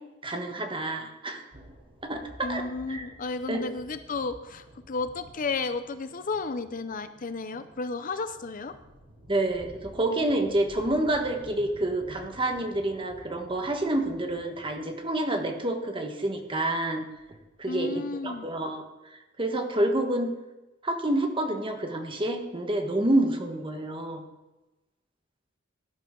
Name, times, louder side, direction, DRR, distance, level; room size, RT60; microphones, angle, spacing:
voice 1, 0.2-1.4 2.0-3.1 3.5-3.7 9.3-17.1 17.6-18.8 19.1-20.3 20.8-24.2, right 1 dB, 25° right, 4 dB, 1.5 m, -28 dB
sound 1, 1.5-17.7, equal, 60° right, 4.1 m, -52 dB
voice 2, 2.4-8.8 17.7-18.5, left 4 dB, 40° left, 11 dB, 0.6 m, -33 dB
17.0 x 11.5 x 3.8 m, 1.0 s
head